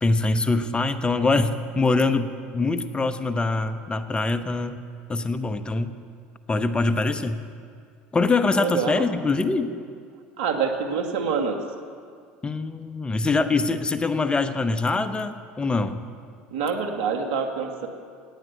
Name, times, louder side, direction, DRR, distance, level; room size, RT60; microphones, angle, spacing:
voice 1, 0.0-4.8 5.1-5.9 6.5-7.4 8.1-9.7 12.4-16.0, left 3 dB, 20° left, 10 dB, 1.1 m, -24 dB
voice 2, 8.5-9.0 10.4-11.6 16.5-17.9, right 6 dB, 75° right, 4 dB, 1.9 m, -26 dB
18.5 x 9.3 x 8.3 m, 2.2 s
hypercardioid pair, 80°, 5 cm